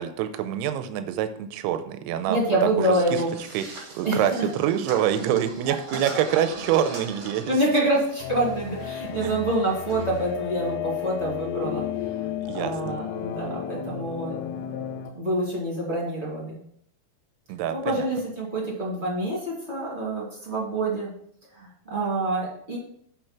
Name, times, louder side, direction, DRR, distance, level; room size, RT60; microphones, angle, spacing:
voice 1, 0.0-2.4 2.8-2.9 3.5-3.7 3.9-7.6 9.2-9.4 12.5-13.0 17.5-18.0, right 10 dB, 85° right, 9 dB, 2.5 m, -26 dB
voice 2, 2.3-3.3 4.0-4.4 7.5-11.8 12.1-14.8 15.1-16.6 17.7-21.1 21.5-22.8, right 1 dB, 25° right, -4 dB, 1.7 m, -27 dB
sound 1, 3.1-10.2, right 2 dB, 60° right, 1.4 m, -41 dB
sound 2, 8.2-15.1, left 11 dB, 85° left, 2.7 m, -33 dB
7.9 x 4.5 x 5.8 m, 0.67 s
omnidirectional pair, 5.0 m